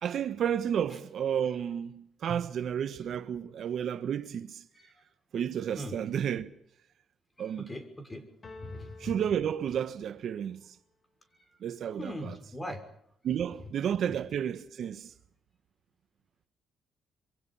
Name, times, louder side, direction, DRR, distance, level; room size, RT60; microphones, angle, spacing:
voice 1, 0.0-4.6 5.3-6.5 7.4-7.7 9.0-10.7 11.6-12.3 13.2-15.1, right 9 dB, 65° right, 1.3 m, -32 dB
voice 2, 7.4-8.3 8.6-9.1 12.0-12.8 14.0-14.2, left 1 dB, 15° left, 6.0 m, -41 dB
sound 1, 8.4-10.4, left 3 dB, 35° left, 3.8 m, -51 dB
27.0 x 23.5 x 5.7 m
cardioid pair, 90°, 0 cm